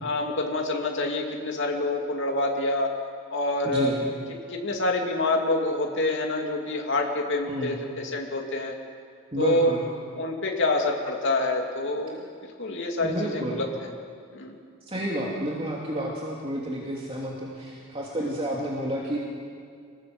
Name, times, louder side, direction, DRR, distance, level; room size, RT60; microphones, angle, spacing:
voice 1, 0.0-2.9 3.3-3.9 4.5-8.8 9.4-9.7 10.2-13.9 14.3-14.6 18.2-18.3, left 2 dB, 55° left, 1 dB, 2.8 m, -27 dB
voice 2, 3.6-4.1 7.5-7.8 9.3-9.9 13.0-13.7 14.9-19.2, right 1 dB, 25° right, -3 dB, 2.7 m, -30 dB
25.0 x 19.5 x 7.9 m, 2.2 s
head